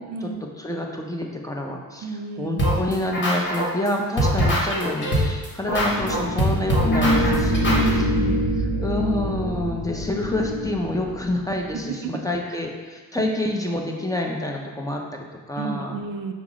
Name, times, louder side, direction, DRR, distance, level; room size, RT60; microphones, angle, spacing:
voice 1, 0.0-0.5 2.0-2.7 7.7-8.4 9.9-10.2 11.9-12.2 12.5-12.6 13.2-13.3 15.6-16.3, right 4 dB, 65° right, 5 dB, 0.5 m, -31 dB
voice 2, 0.6-7.8 8.8-16.0, left 1 dB, 10° left, 1 dB, 0.6 m, -27 dB
sound 1, 2.6-3.9 4.2-7.9, equal, 30° left, 1.4 m, -22 dB
sound 2, 5.7-11.7, equal, 60° left, 0.6 m, -24 dB
5.3 x 2.0 x 4.8 m, 1.3 s
cardioid pair, 75°, 36 cm